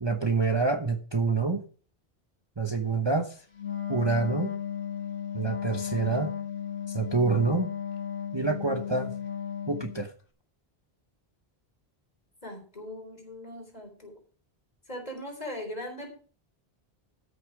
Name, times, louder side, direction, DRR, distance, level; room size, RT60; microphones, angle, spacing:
voice 1, 0.0-1.6 2.6-3.4 3.9-4.5 5.3-6.3 6.9-7.7 8.3-9.1 9.7-10.1, right 4 dB, 25° right, 6 dB, 0.9 m, -27 dB
Wind instrument woodwind instrument, 3.6-10.1, left 8 dB, 60° left, 1.8 m, -35 dB
voice 2, 12.4-14.2 14.9-16.2, left 1 dB, 40° left, 2 dB, 3.8 m, -39 dB
13.5 x 6.5 x 4.8 m, 0.40 s
omnidirectional pair, 1.0 m